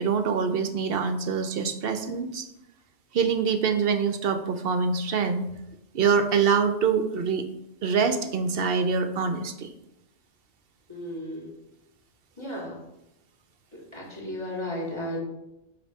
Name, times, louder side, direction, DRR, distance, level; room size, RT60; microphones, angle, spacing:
voice 1, 0.0-2.5 3.1-5.4 5.9-7.5 7.8-9.7, right 6 dB, 60° right, 8 dB, 0.7 m, -25 dB
voice 2, 10.9-11.6 12.4-12.8 13.7-15.2, left 1 dB, 25° left, -4 dB, 2.1 m, -34 dB
8.6 x 2.9 x 5.3 m, 0.88 s
omnidirectional pair, 1.2 m